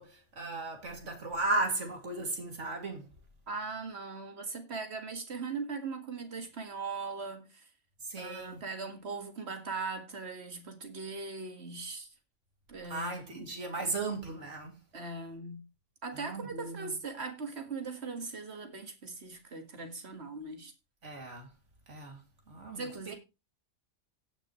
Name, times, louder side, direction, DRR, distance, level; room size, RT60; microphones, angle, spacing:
voice 1, 0.0-3.0 8.1-8.6 12.9-14.7 16.1-16.9 21.0-21.5 21.9-22.2 22.5-23.2, right 2 dB, 75° right, 2.9 m, -36 dB
voice 2, 3.5-7.7 8.2-12.1 12.7-13.5 14.9-15.6 16.0-20.7 22.8-23.1, right 4 dB, 60° right, 2.0 m, -40 dB
17.0 x 6.3 x 3.1 m
omnidirectional pair, 1.2 m